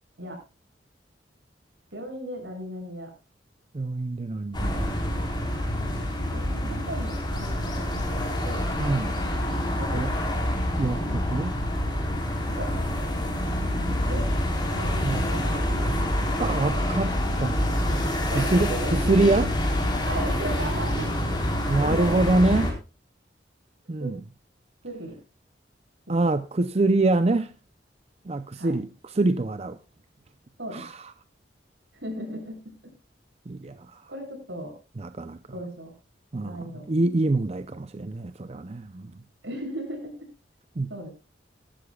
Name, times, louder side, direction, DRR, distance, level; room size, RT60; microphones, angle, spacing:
voice 1, 1.9-3.1 5.9-8.7 9.8-10.3 12.6-12.7 14.1-14.3 14.7-16.1 18.3-18.7 20.0-21.1 21.8-22.4 24.0-24.1 24.8-25.2 26.1-26.3 28.6-28.7 30.6-30.9 31.9-32.7 34.1-34.7 35.5-35.9 36.4-36.9 39.4-40.3 40.9-41.1, right 1 dB, 80° right, 7.1 m, -37 dB
voice 2, 3.7-5.0 8.8-9.2 9.9-10.1 10.8-11.6 15.0-16.1 16.4-17.1 17.4-17.6 18.3-19.5 21.7-22.7 23.9-24.2 26.1-27.5 28.3-29.8 30.7-31.1 33.5-34.0 35.0-35.4 36.3-39.1 40.8-40.9, right 2 dB, 35° right, 0.6 m, -25 dB
sound 1, 4.5-22.7, left 1 dB, 25° left, 4.0 m, -27 dB
18.5 x 13.0 x 2.3 m
head